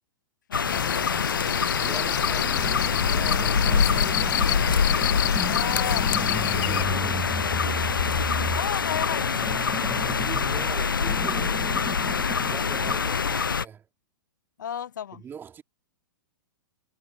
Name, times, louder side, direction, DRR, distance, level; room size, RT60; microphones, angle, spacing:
sound 1, 0.5-13.6, left 6 dB, 75° left, 0.6 m, -25 dB
voice 1, 0.5-1.3 5.4-6.1 8.5-9.4 14.6-15.2, left 9 dB, 60° left, 1.7 m, -33 dB
sound 2, 0.6-6.8, left 29 dB, 35° left, 2.1 m, -30 dB
voice 2, 1.8-5.2 6.4-8.1 10.0-13.9 15.1-15.6, right 8 dB, 20° right, 3.6 m, -43 dB
sound 3, 2.6-13.1, equal, ahead, 2.9 m, -35 dB
figure-of-eight pair, 105°, 11 cm